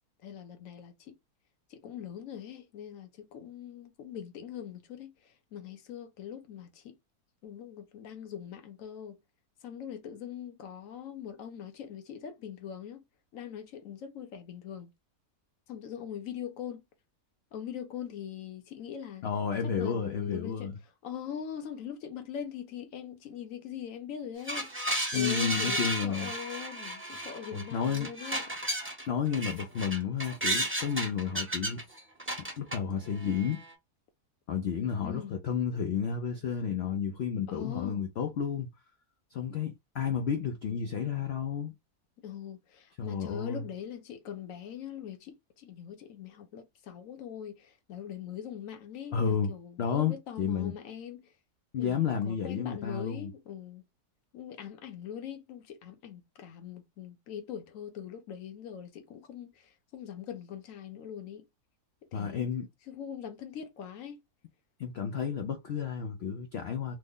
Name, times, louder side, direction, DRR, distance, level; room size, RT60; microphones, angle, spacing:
voice 1, 0.2-1.2 1.7-7.0 7.4-9.2 9.6-13.0 13.3-14.9 15.7-16.8 17.5-19.2 19.6-20.7 21.0-24.7 25.1-28.4 35.0-35.4 37.5-38.1 42.2-51.3 51.8-52.0 52.3-53.8 54.3-61.4 62.0-62.5 62.9-64.2, left 8 dB, 65° left, 0.9 m, -42 dB
voice 2, 19.2-20.8 25.1-26.3 27.5-28.1 29.1-31.8 32.4-33.6 34.5-38.7 39.3-41.7 43.0-43.6 49.1-49.5 49.8-50.7 51.7-53.3 62.1-62.7 64.8-67.0, left 7 dB, 85° left, 0.5 m, -31 dB
sound 1, 24.5-29.1 29.3-32.8 33.2-33.7, right 1 dB, 10° right, 0.6 m, -34 dB
3.1 x 2.0 x 3.6 m
omnidirectional pair, 1.7 m